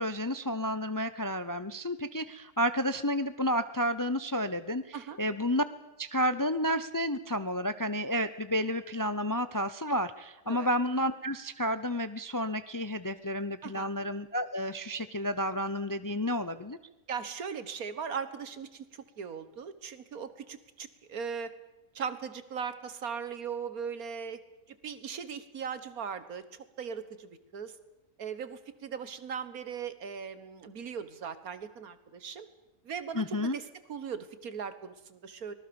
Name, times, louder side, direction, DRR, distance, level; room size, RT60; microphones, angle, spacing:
voice 1, 0.0-5.6 6.0-16.8 33.1-33.6, equal, 30° left, 13 dB, 0.4 m, -31 dB
voice 2, 17.1-21.5 22.0-24.4 24.7-27.8 28.2-32.5 32.8-35.5, right 6 dB, 80° right, 12 dB, 1.9 m, -39 dB
24.5 x 19.0 x 7.0 m, 1.0 s
omnidirectional pair, 1.5 m